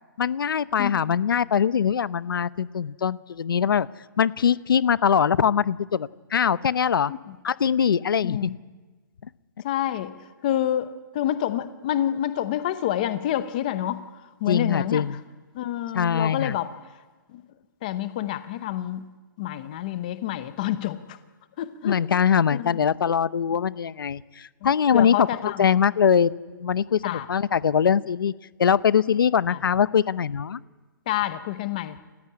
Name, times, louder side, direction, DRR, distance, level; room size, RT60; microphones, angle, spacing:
voice 1, 0.2-3.9 4.2-7.1 7.4-8.5 14.5-15.2 15.9-16.6 21.8-28.3 28.6-30.6, left 7 dB, 75° left, 17 dB, 0.8 m, -22 dB
voice 2, 0.8-1.1 7.1-7.2 8.2-8.6 9.6-10.1 10.4-10.9 11.1-14.0 14.4-15.0 15.5-16.7 17.3-17.4 17.8-19.1 19.4-21.2 21.6-22.0 22.5-22.8 24.6-25.7 27.0-27.3 29.5-29.6 31.1-32.0, left 12 dB, 20° left, 12 dB, 0.7 m, -28 dB
29.0 x 16.0 x 9.7 m, 1.3 s
hypercardioid pair, 180°, 11 cm